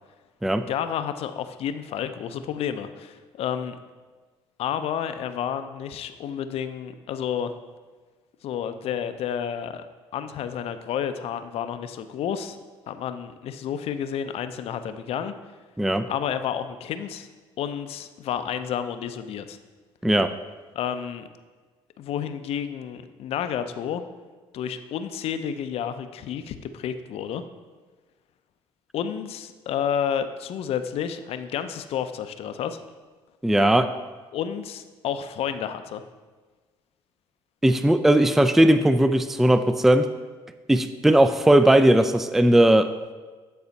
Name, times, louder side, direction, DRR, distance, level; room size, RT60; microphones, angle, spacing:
voice 1, 0.7-3.8 4.6-7.5 8.4-9.8 10.1-12.6 12.9-15.3 16.1-17.3 17.6-19.6 20.7-21.3 22.0-24.0 24.5-27.4 28.9-32.8 34.3-36.0, left 8 dB, 65° left, 10 dB, 0.5 m, -30 dB
voice 2, 20.0-20.3 33.4-33.9 37.6-40.1 40.7-42.9, right 1 dB, 5° right, 11 dB, 0.3 m, -18 dB
9.4 x 4.2 x 4.1 m, 1.4 s
supercardioid pair, 65°, 11 cm